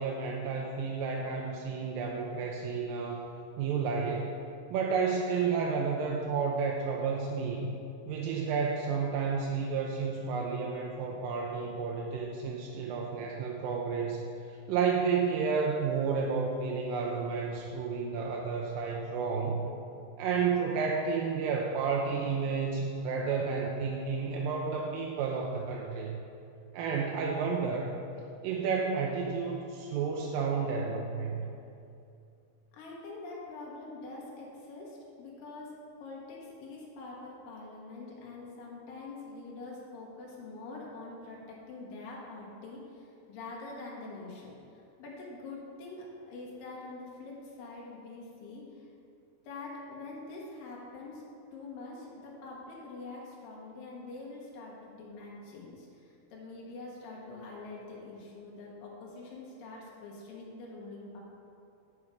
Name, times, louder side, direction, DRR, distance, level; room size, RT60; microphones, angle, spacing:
voice 1, 0.0-4.4 4.7-7.7 8.1-14.3 14.7-19.7 20.2-26.2 26.7-28.0 28.4-31.5, right 5 dB, 85° right, 0 dB, 2.3 m, -31 dB
voice 2, 32.7-35.7 36.0-48.9 49.4-51.2 51.5-61.2, left 3 dB, 80° left, -4 dB, 3.0 m, -45 dB
9.8 x 5.5 x 4.8 m, 2.6 s
omnidirectional pair, 4.0 m